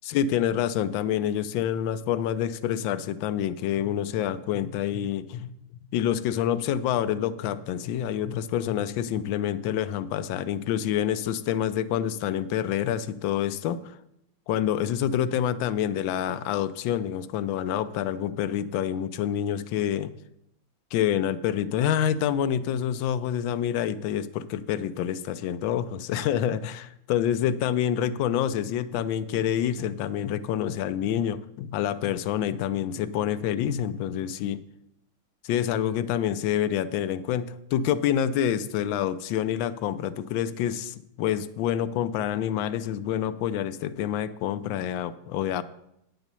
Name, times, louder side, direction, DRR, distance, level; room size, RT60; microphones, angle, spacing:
voice 1, 0.0-5.5 5.9-14.0 14.5-20.1 20.9-34.6 35.4-45.6, left 10 dB, 75° left, 14 dB, 1.3 m, -27 dB
9.6 x 6.1 x 6.8 m, 0.79 s
omnidirectional pair, 2.3 m